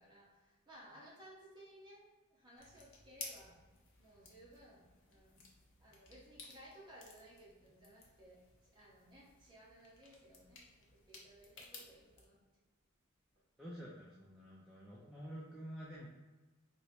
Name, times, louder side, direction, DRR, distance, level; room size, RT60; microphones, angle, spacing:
voice 1, 0.0-2.0 2.3-3.6 4.0-5.4 5.8-10.6 10.9-12.4, right 1 dB, 20° right, -6 dB, 0.9 m, -59 dB
sound 1, 2.6-12.3, left 4 dB, 60° left, 0.6 m, -56 dB
voice 2, 13.6-16.1, equal, ahead, -6 dB, 0.3 m, -49 dB
3.1 x 2.0 x 4.1 m, 1.2 s
head